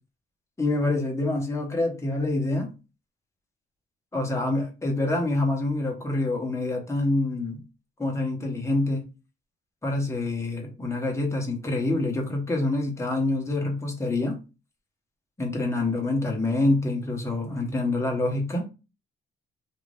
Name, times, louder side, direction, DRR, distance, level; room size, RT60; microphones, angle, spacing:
voice 1, 0.6-2.7 4.1-7.6 8.0-9.0 9.8-14.4 15.4-18.6, left 2 dB, 15° left, 1 dB, 1.0 m, -26 dB
2.6 x 2.5 x 3.2 m, 0.30 s
cardioid pair, 90°, 20 cm